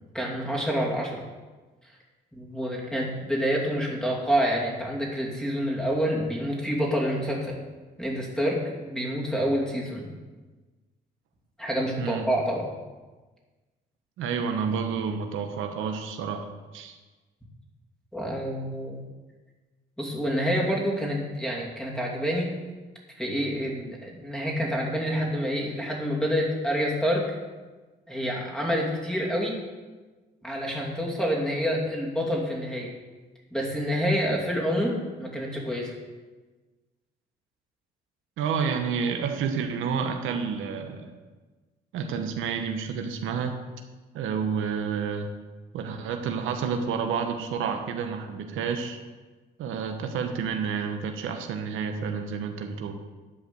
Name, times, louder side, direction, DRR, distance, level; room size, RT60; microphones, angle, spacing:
voice 1, 0.1-1.2 2.3-7.6 8.0-10.1 11.6-12.7 18.1-19.0 20.0-22.5 23.1-27.3 28.1-29.6 30.4-32.9 33.5-35.9, equal, 5° left, -3 dB, 2.7 m, -27 dB
voice 2, 12.0-12.3 14.2-16.5 16.7-17.0 38.4-41.1 41.9-43.6 44.1-45.3 45.7-49.0 49.6-53.0, right 6 dB, 85° right, 5 dB, 1.0 m, -29 dB
11.0 x 5.0 x 7.0 m, 1.3 s
cardioid pair, 90°, 20 cm